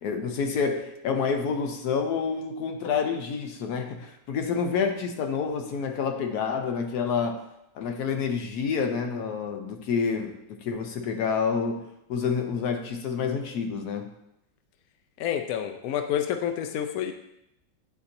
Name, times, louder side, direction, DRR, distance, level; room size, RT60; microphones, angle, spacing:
voice 1, 0.0-7.4 7.7-14.1, left 5 dB, 65° left, 4 dB, 1.1 m, -28 dB
voice 2, 15.2-17.1, left 9 dB, 85° left, 7 dB, 0.7 m, -28 dB
9.6 x 4.2 x 2.6 m, 0.82 s
omnidirectional pair, 2.1 m